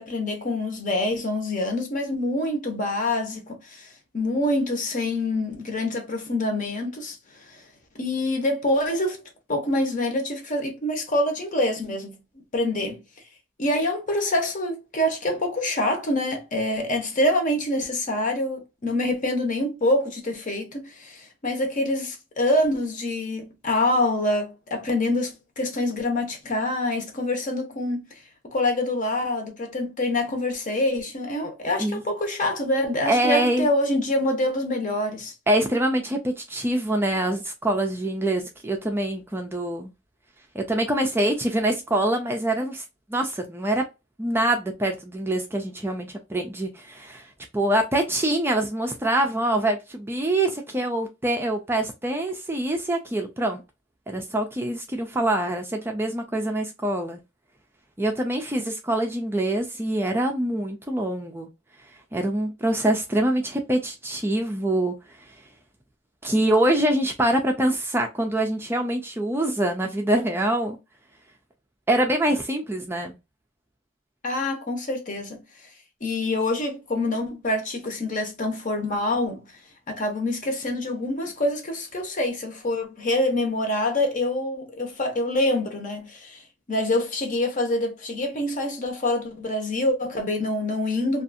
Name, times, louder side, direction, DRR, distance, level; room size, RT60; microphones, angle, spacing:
voice 1, 0.0-7.2 7.5-7.6 8.0-9.2 9.5-12.2 12.5-13.0 13.6-28.1 28.5-35.3 74.2-75.4 76.0-79.4 79.9-86.4 86.7-91.2, left 1 dB, 40° left, 0.8 m, -26 dB
voice 2, 33.0-33.7 35.5-39.9 40.5-42.8 43.1-43.8 44.2-47.3 47.5-53.6 54.1-57.2 58.0-61.5 62.1-64.9 66.2-70.8 71.9-73.1, right 1 dB, 10° right, 0.4 m, -25 dB
2.6 x 2.4 x 2.5 m
head